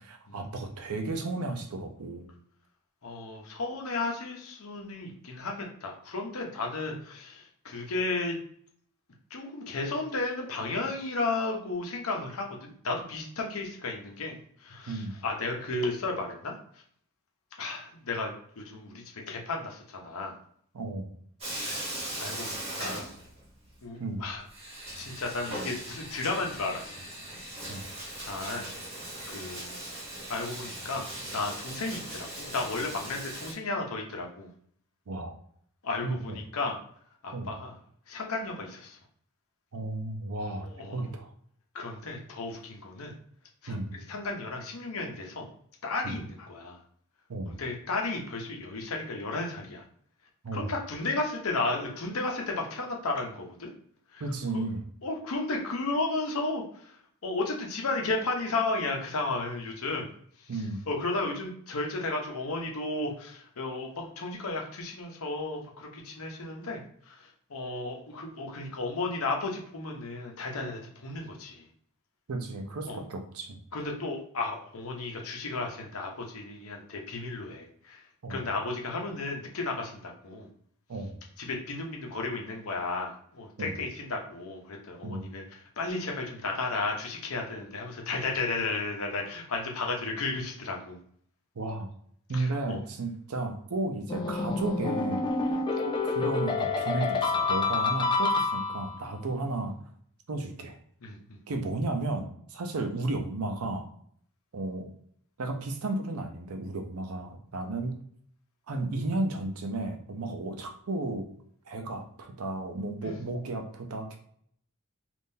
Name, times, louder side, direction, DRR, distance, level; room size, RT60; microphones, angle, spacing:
voice 1, 0.0-2.3 14.9-15.1 20.7-21.1 24.0-24.2 27.7-27.9 35.1-35.3 36.0-36.4 37.3-37.5 39.7-41.3 43.7-43.9 46.0-46.2 47.3-47.6 50.4-50.7 54.2-54.9 60.5-60.8 72.3-73.6 78.2-78.4 80.9-81.2 83.6-83.8 85.0-85.2 91.6-91.9 92.3-99.7 100.3-100.8 101.5-103.8 104.5-104.9 105.4-108.0 108.7-111.3 111.7-114.2, right 2 dB, 80° right, 6 dB, 0.6 m, -33 dB
voice 2, 3.0-8.4 9.3-16.5 17.6-20.4 21.6-23.1 23.8-24.4 25.0-26.9 28.2-28.7 29.3-29.7 30.3-31.1 31.3-34.5 35.8-36.8 37.2-37.8 38.1-39.0 40.6-41.1 41.7-43.1 43.6-45.5 45.8-46.8 47.5-49.8 50.5-53.7 54.1-54.2 54.5-54.7 55.0-57.0 57.2-60.1 60.9-71.7 72.9-73.0 73.7-78.0 78.3-80.5 81.4-91.0 92.3-92.8 101.0-101.4 113.0-113.2, left 3 dB, 75° left, 1 dB, 0.8 m, -34 dB
Bathtub (filling or washing), 21.4-23.7 24.0-24.1 24.5-33.5, right 1 dB, 30° right, 1.3 m, -39 dB
sound 1, 94.1-99.0, left 3 dB, 20° left, 0.3 m, -28 dB
3.6 x 2.5 x 2.7 m, 0.63 s
head